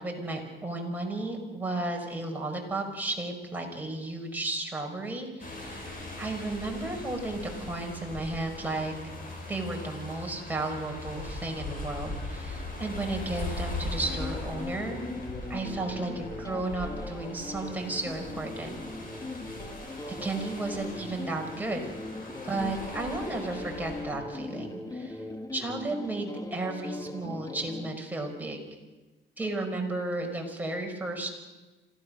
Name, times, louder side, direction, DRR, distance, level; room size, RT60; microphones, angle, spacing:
voice 1, 0.0-5.8 6.2-8.9 9.5-15.0 15.5-18.7 20.2-21.9 22.4-25.2 25.5-28.6 29.4-31.3, right 2 dB, 10° right, 0 dB, 5.6 m, -33 dB
sound 1, 5.4-24.0, left 2 dB, 45° left, 7.6 m, -40 dB
sound 2, 14.0-27.9, left 2 dB, 20° left, 1.7 m, -40 dB
26.5 x 17.0 x 6.6 m, 1.2 s
cardioid pair, 90°, 20 cm